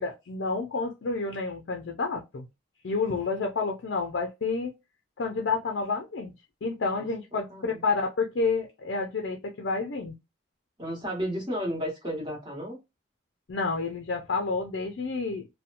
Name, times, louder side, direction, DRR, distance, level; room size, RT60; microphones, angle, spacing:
voice 1, 0.0-2.5 2.8-4.7 5.2-6.3 6.6-10.1 13.5-15.5, left 4 dB, 65° left, 0.4 m, -29 dB
voice 2, 7.5-7.8 10.8-12.8, equal, 20° right, 1.2 m, -33 dB
2.7 x 2.1 x 2.5 m
head